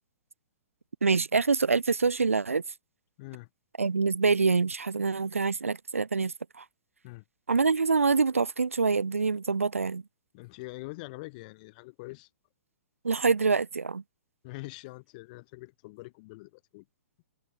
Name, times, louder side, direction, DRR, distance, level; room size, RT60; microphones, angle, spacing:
voice 1, 1.0-2.6 3.8-6.6 7.5-10.0 13.0-14.0, right 4 dB, 75° right, 0.9 m, -25 dB
voice 2, 3.2-3.5 7.0-7.2 10.3-12.3 14.4-16.8, left 24 dB, 35° left, 1.6 m, -44 dB
figure-of-eight pair, 115°, 7 cm